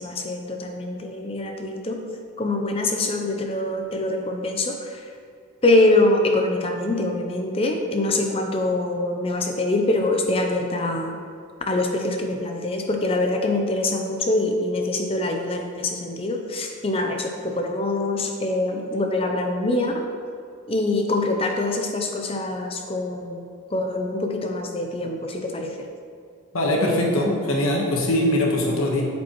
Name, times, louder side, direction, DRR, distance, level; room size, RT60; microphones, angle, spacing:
voice 1, 0.0-2.0 2.4-5.1 5.6-11.2 11.7-20.0 20.7-25.9, left 2 dB, 25° left, 3 dB, 0.5 m, -24 dB
voice 2, 26.5-29.0, left 1 dB, 90° left, -1 dB, 1.2 m, -21 dB
8.6 x 7.4 x 3.0 m, 2.4 s
head